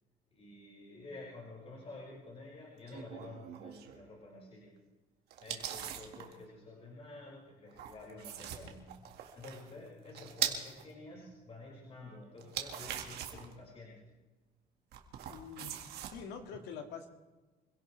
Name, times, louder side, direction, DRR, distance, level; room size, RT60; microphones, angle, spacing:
voice 1, 0.3-4.7 5.4-9.0 9.3-14.0, left 2 dB, 35° left, -4 dB, 5.8 m, -50 dB
sound 1, 2.9-4.0 5.3-6.3 7.7-10.8 12.4-13.5 14.9-16.1, right 9 dB, 75° right, 2.0 m, -41 dB
voice 2, 15.3-15.8 16.1-17.1, left 6 dB, 85° left, 5 dB, 2.1 m, -45 dB
26.0 x 16.5 x 3.4 m, 1.2 s
cardioid pair, 110°, 17 cm